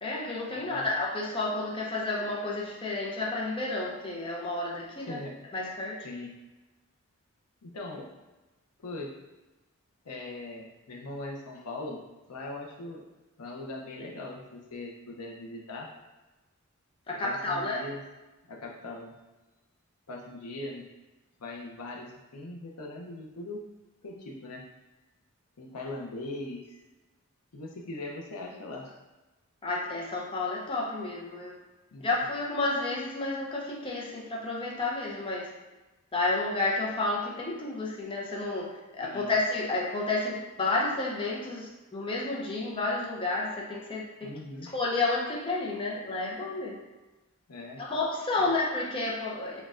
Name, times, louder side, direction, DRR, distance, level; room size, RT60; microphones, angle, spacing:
voice 1, 0.0-5.2 5.5-6.0 17.1-17.8 29.6-31.5 32.0-35.5 36.1-44.3 44.7-46.8 47.8-49.7, left 2 dB, 25° left, -3 dB, 0.6 m, -31 dB
voice 2, 0.5-0.9 5.0-5.4 6.0-6.4 7.6-8.1 8.8-9.2 10.0-12.0 12.3-13.0 13.4-15.9 17.2-18.0 18.5-19.1 20.1-20.9 21.4-23.6 24.0-24.6 25.6-26.8 27.5-29.0 31.9-32.2 39.0-39.3 44.2-44.8 47.5-47.8 48.4-48.5, left 2 dB, 90° left, 0 dB, 0.7 m, -40 dB
6.3 x 2.2 x 2.4 m, 1.1 s
head